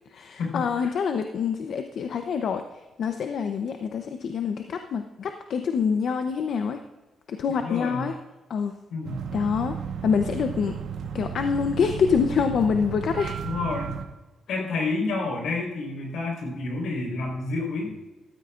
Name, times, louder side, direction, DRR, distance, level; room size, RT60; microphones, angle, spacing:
voice 1, 0.1-2.6 3.0-6.8 7.3-8.1 8.5-8.7 9.3-9.8 10.0-10.7 11.1-13.4, left 6 dB, 65° left, 6 dB, 0.7 m, -26 dB
voice 2, 7.5-8.1 8.9-9.2 13.4-13.9 14.5-18.0, left 3 dB, 85° left, 0 dB, 4.3 m, -29 dB
sound 1, 9.0-14.0, right 7 dB, 80° right, 1.2 m, -34 dB
14.5 x 13.0 x 2.5 m, 1.1 s
cardioid pair, 105°, 0 cm